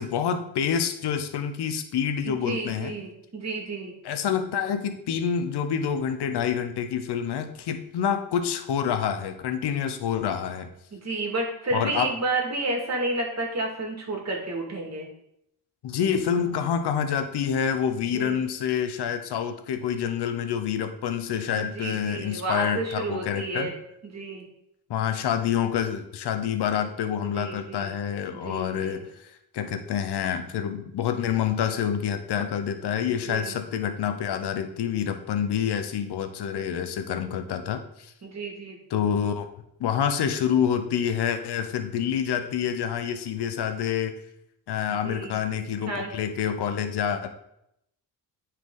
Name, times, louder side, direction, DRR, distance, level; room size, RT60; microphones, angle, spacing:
voice 1, 0.0-2.9 4.0-10.7 11.7-12.1 15.8-23.7 24.9-38.1 38.9-39.5 39.8-44.1 44.7-47.3, left 8 dB, 75° left, 8 dB, 1.0 m, -27 dB
voice 2, 2.3-3.9 10.9-15.1 18.1-18.4 21.6-23.7 24.0-24.5 27.2-28.0 28.3-29.0 33.1-33.6 38.2-38.8 45.0-45.4 45.9-46.1, right 2 dB, 40° right, 1 dB, 2.4 m, -31 dB
9.3 x 4.8 x 3.9 m, 0.77 s
cardioid pair, 75°, 40 cm